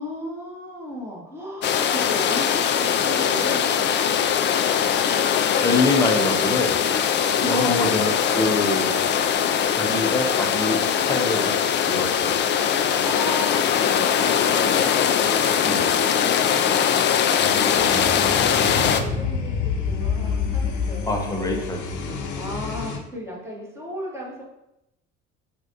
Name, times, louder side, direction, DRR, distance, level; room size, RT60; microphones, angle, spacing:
voice 1, 0.0-4.4 5.1-5.3 5.5-5.8 7.4-8.7 13.0-13.9 14.4-15.0 17.8-21.1 21.4-22.0 22.4-24.4, equal, 5° right, -4 dB, 1.3 m, -35 dB
sound 1, 1.6-19.0, left 8 dB, 30° left, 0.4 m, -21 dB
voice 2, 5.6-6.8 7.4-8.9 9.7-11.5 11.9-12.4 15.7-15.9 17.9-18.1 21.1-22.3, left 2 dB, 10° left, 1 dB, 0.9 m, -25 dB
sound 2, 17.4-23.0, left 5 dB, 50° left, 0.9 m, -28 dB
6.0 x 2.5 x 2.8 m, 0.88 s
hypercardioid pair, 65°, 37 cm